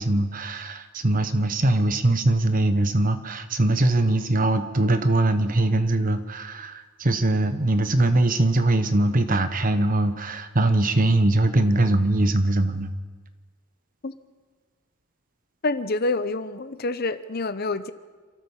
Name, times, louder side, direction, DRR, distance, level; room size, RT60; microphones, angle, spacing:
voice 1, 0.0-12.9, right 2 dB, 40° right, 9 dB, 1.2 m, -22 dB
voice 2, 15.6-17.9, left 2 dB, 45° left, 13 dB, 0.8 m, -27 dB
27.5 x 13.5 x 7.3 m, 1.5 s
head